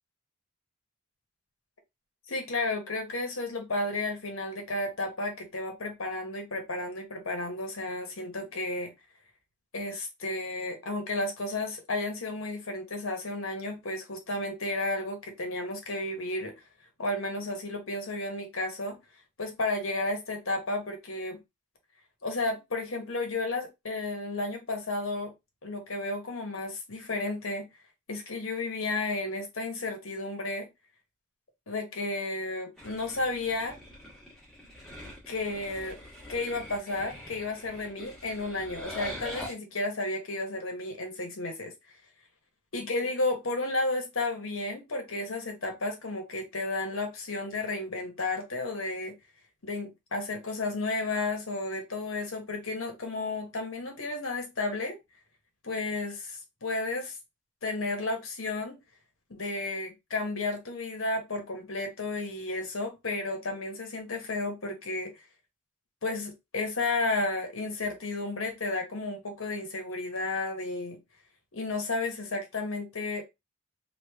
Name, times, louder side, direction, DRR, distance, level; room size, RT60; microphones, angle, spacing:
voice 1, 2.3-8.9 9.7-16.5 17.0-19.0 19.4-21.4 22.2-25.3 25.6-27.7 28.1-30.7 31.7-33.7 35.3-36.0 36.3-41.7 42.7-49.2 49.6-55.0 55.6-57.1 57.6-58.8 59.3-65.2 66.0-71.0 71.5-73.2, left 2 dB, 75° left, 1.1 m, -32 dB
sound 1, 32.8-39.5, left 1 dB, ahead, 1.3 m, -43 dB
3.2 x 2.4 x 3.4 m
head